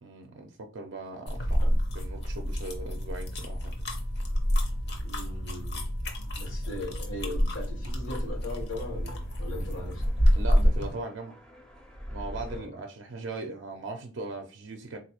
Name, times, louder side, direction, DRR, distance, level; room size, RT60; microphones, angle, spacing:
voice 1, 0.0-3.7 10.4-11.3 12.1-15.0, right 2 dB, 60° right, 0.4 m, -39 dB
sound 1, 1.3-10.9, equal, 55° left, 0.8 m, -28 dB
voice 2, 5.0-5.8 6.3-10.0 12.5-12.7, left 1 dB, 80° left, 1.3 m, -39 dB
sound 2, 8.2-12.6, equal, 5° left, 0.5 m, -46 dB
3.9 x 2.5 x 2.8 m
head